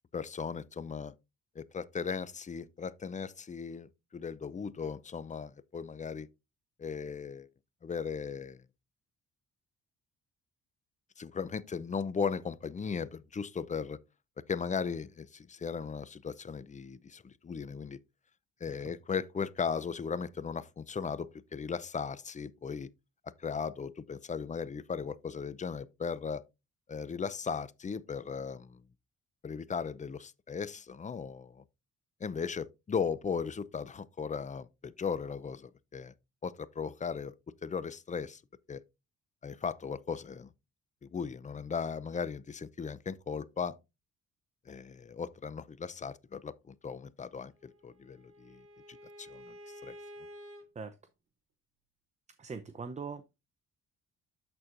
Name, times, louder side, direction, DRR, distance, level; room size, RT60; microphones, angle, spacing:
voice 1, 0.1-1.1 1.6-6.3 6.8-7.5 7.8-8.6 11.2-14.0 14.5-18.0 18.6-22.9 23.4-26.4 26.9-28.8 29.4-31.6 32.2-36.1 36.4-37.3 37.6-38.4 38.7-38.8 39.4-40.5 41.0-43.8 44.7-48.6 48.9-49.6 49.8-50.0, left 6 dB, 25° left, 0.5 m, -37 dB
Bowed string instrument, 47.5-50.6, equal, 45° right, 2.4 m, -51 dB
voice 2, 52.4-53.3, right 5 dB, 25° right, 0.6 m, -41 dB
13.0 x 4.4 x 2.5 m
cardioid pair, 90°, 30 cm